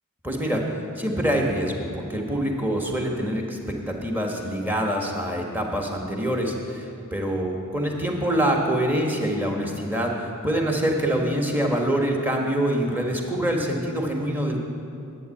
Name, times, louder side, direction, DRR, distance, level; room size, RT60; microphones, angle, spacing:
voice 1, 0.2-10.1 10.4-14.6, right 1 dB, 10° right, 0 dB, 1.5 m, -25 dB
10.5 x 8.6 x 8.5 m, 2.7 s
head